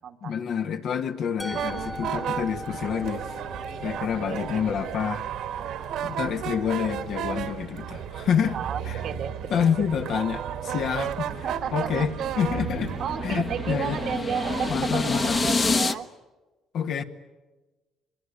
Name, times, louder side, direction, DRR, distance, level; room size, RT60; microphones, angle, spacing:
voice 1, 0.2-3.2 3.8-5.2 6.0-8.6 8.9-9.0 9.5-13.0 13.2-14.0 14.7-15.4 16.7-17.0, left 7 dB, 65° left, 1.7 m, -28 dB
Musical instrument, 1.4-7.3, equal, ahead, 1.2 m, -42 dB
sound 1, 1.5-15.8, right 9 dB, 75° right, 1.9 m, -33 dB
voice 2, 3.9-4.9 5.6-5.8 8.5-9.5 11.4-12.3 13.0-16.1, right 8 dB, 60° right, 1.4 m, -33 dB
sound 2, 11.7-15.9, left 4 dB, 35° left, 1.3 m, -28 dB
24.0 x 22.0 x 9.9 m
cardioid pair, 85°, 0 cm